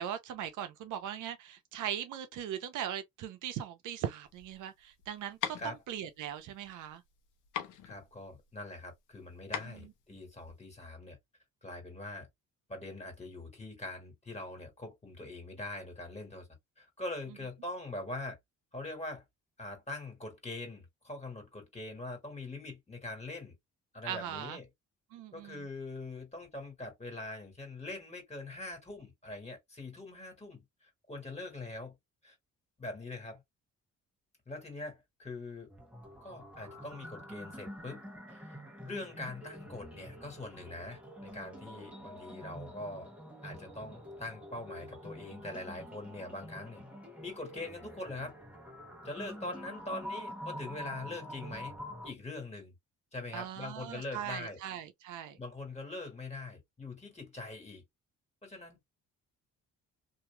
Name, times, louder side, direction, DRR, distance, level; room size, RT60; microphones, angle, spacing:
voice 1, 0.0-7.0 9.6-9.9 24.0-24.6 25.1-25.7 53.3-55.4, right 10 dB, 85° right, 0.7 m, -39 dB
sound 1, 4.2-10.9, left 10 dB, 80° left, 0.8 m, -42 dB
voice 2, 7.9-11.2 11.6-12.3 12.7-16.5 16.8-18.4 18.7-19.2 19.6-23.6 23.9-24.7 25.3-30.6 31.1-31.9 32.2-32.4 32.8-33.4 34.5-35.7 36.2-38.0 38.3-38.6 38.8-43.1 43.4-46.8 47.2-48.3 49.0-51.7 52.0-52.7 53.1-54.6 55.4-57.8 58.4-58.8, left 2 dB, 20° left, 1.9 m, -43 dB
sound 2, 35.7-52.1, equal, 5° right, 1.1 m, -47 dB
3.0 x 2.7 x 2.2 m
cardioid pair, 90°, 30 cm